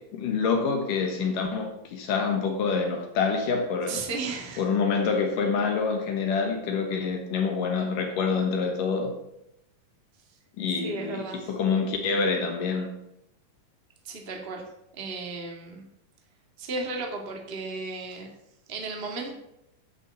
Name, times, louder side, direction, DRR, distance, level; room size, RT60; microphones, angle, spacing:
voice 1, 0.0-4.0 4.6-9.2 10.6-12.9, left 5 dB, 70° left, 2.7 m, -26 dB
voice 2, 3.9-4.6 10.8-11.4 14.0-14.6 14.9-15.9 16.6-18.3 18.7-19.3, right 3 dB, 25° right, 1.4 m, -34 dB
11.0 x 6.1 x 8.1 m
omnidirectional pair, 4.3 m